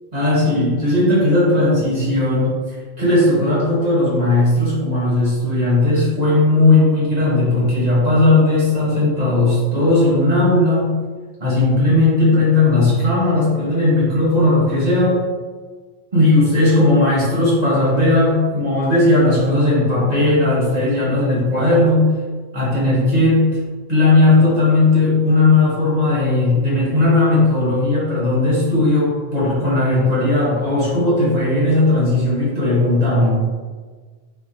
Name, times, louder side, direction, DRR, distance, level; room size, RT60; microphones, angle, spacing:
voice 1, 0.1-2.6 3.0-10.9 11.4-15.2 16.1-22.1 22.5-23.5 23.9-33.4, left 2 dB, 40° right, -7 dB, 1.5 m, -16 dB
4.4 x 4.1 x 2.9 m, 1.4 s
omnidirectional pair, 1.1 m